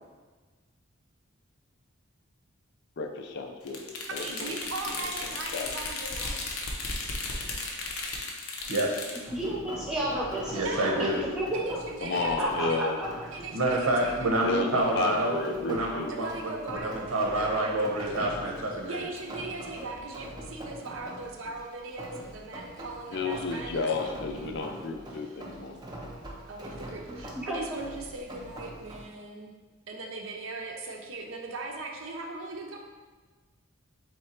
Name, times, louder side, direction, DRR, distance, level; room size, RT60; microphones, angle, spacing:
voice 1, 3.0-3.8 4.1-4.6 4.9-5.0 5.2-5.7 12.0-13.0 14.4-16.1 23.1-25.8, left 3 dB, 55° left, 4 dB, 0.4 m, -32 dB
sound 1, 3.7-9.2, left 3 dB, 85° left, 0.7 m, -35 dB
voice 2, 4.1-6.4 10.6-11.0 11.5-12.4 12.7-12.8 13.2-14.3 16.1-17.7 18.8-25.4 26.5-29.6 29.9-32.8, right 3 dB, 65° right, 2 dB, 0.6 m, -39 dB
voice 3, 8.7-9.0 10.5-11.2 13.5-19.0, right 1 dB, 90° right, 0 dB, 0.9 m, -28 dB
voice 4, 9.3-11.1 11.3-11.6 12.4-13.1 27.5-27.6, equal, 5° right, -5 dB, 0.9 m, -31 dB
Rain, 9.3-29.1, right 1 dB, 20° right, 0.5 m, -43 dB
3.9 x 3.2 x 4.3 m, 1.3 s
head